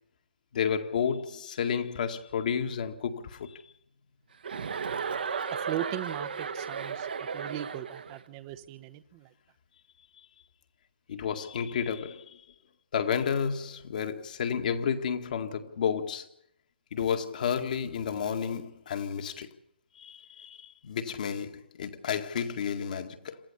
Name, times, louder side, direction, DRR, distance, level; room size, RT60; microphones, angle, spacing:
voice 1, 0.5-3.6 11.1-12.4 12.9-16.3 16.9-19.5 20.0-23.4, left 7 dB, 50° left, 2.0 m, -31 dB
Chuckle chortle, 4.4-8.2, right 6 dB, 60° right, 1.5 m, -34 dB
voice 2, 5.5-9.3, right 13 dB, 25° right, 1.0 m, -39 dB
27.5 x 14.5 x 7.0 m
figure-of-eight pair, 140°, 6 cm